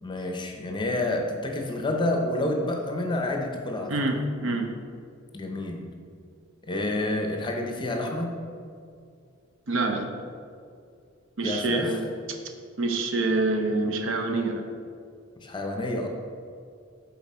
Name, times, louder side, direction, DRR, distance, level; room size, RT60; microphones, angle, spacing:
voice 1, 0.0-3.9 5.3-5.9 6.6-8.3 11.4-12.0 15.4-16.1, left 1 dB, 20° left, 3 dB, 0.6 m, -29 dB
voice 2, 3.9-4.7 9.7-10.1 11.4-12.4 12.8-14.7, right 2 dB, 65° right, 5 dB, 0.7 m, -26 dB
7.7 x 4.2 x 4.2 m, 2.3 s
head